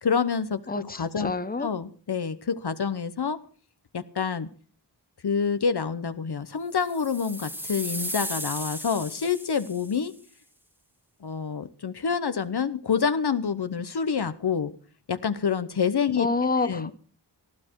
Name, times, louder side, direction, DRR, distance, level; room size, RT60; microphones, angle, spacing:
voice 1, 0.0-1.3 1.6-3.4 3.9-4.5 5.2-10.1 11.2-14.7 15.1-16.3 16.6-16.9, left 6 dB, 70° left, 11 dB, 1.0 m, -27 dB
voice 2, 0.7-1.7 16.2-16.9, left 3 dB, 20° left, 12 dB, 1.0 m, -28 dB
sound 1, 6.8-10.0, equal, 5° right, 1.7 m, -35 dB
19.0 x 13.0 x 4.6 m, 0.42 s
wide cardioid pair, 75°, 42 cm